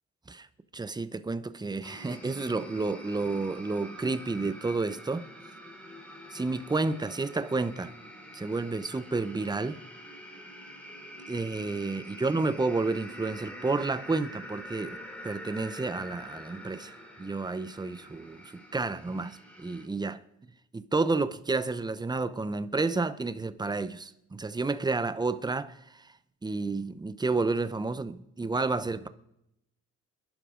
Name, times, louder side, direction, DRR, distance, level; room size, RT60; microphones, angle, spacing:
voice 1, 0.7-5.3 6.3-7.9 8.3-9.8 11.3-20.2 20.7-26.1 26.4-29.1, right 3 dB, 15° right, 0.8 m, -31 dB
sound 1, 1.8-19.9, equal, 5° left, 3.4 m, -46 dB
26.5 x 11.0 x 3.8 m
cardioid pair, 90°, 30 cm